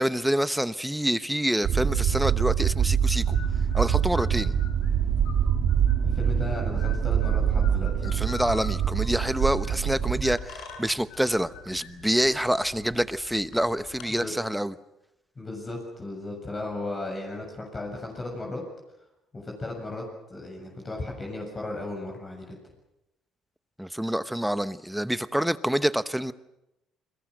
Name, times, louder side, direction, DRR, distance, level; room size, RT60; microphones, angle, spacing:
voice 1, 0.0-3.4 3.7-4.5 8.0-14.7 23.8-26.3, right 1 dB, 5° right, 14 dB, 1.0 m, -27 dB
sound 1, 1.6-10.4, right 8 dB, 65° right, 2.8 m, -25 dB
sound 2, 2.4-14.1, left 7 dB, 80° left, 5.9 m, -46 dB
voice 2, 6.0-8.0 14.1-14.3 15.4-18.6 19.3-20.0 20.3-22.6, left 2 dB, 30° left, 0 dB, 7.5 m, -35 dB
29.5 x 22.0 x 6.6 m, 0.89 s
cardioid pair, 95°, 0 cm